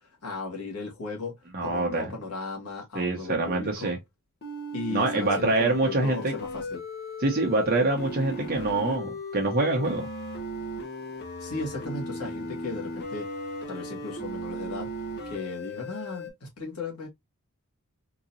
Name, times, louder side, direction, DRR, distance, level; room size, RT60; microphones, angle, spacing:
voice 1, 0.2-1.4 1.6-3.9 4.7-6.8 11.4-13.3 13.7-14.9 15.3-17.1, left 3 dB, 80° left, 1.7 m, -36 dB
voice 2, 1.5-2.1 2.9-4.0 4.9-6.3 7.2-10.1, right 2 dB, 45° right, 0.8 m, -25 dB
sound 1, 4.4-16.3, equal, 50° left, 1.1 m, -37 dB
3.8 x 2.9 x 2.6 m
head